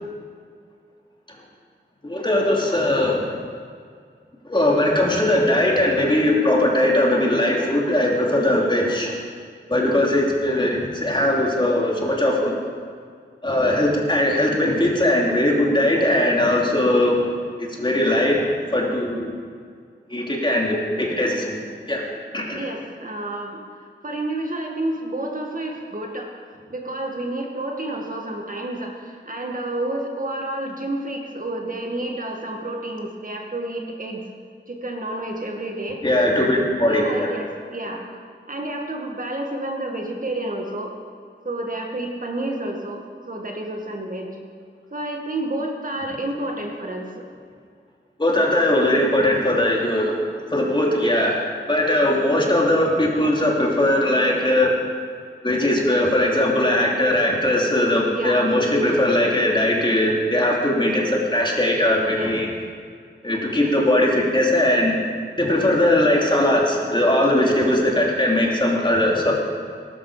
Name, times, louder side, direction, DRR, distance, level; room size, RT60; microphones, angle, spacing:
voice 1, 2.0-3.2 4.5-9.2 9.7-12.5 13.4-17.2 17.6-18.4 18.7-19.3 20.1-21.5 21.9-22.0 22.3-22.6 36.0-37.3 48.2-50.2 50.5-54.7 55.4-62.5 63.2-65.0 65.4-69.3, left 1 dB, 25° left, -2 dB, 3.1 m, -20 dB
voice 2, 22.5-23.6 24.0-26.3 26.7-34.2 34.7-36.0 36.3-36.5 36.8-38.0 38.5-40.9 41.5-44.3 44.9-47.3 58.1-58.5 62.1-62.3 67.4-67.5, right 1 dB, 45° right, 1 dB, 2.1 m, -30 dB
20.0 x 12.5 x 5.1 m, 2.1 s
wide cardioid pair, 90°, 19 cm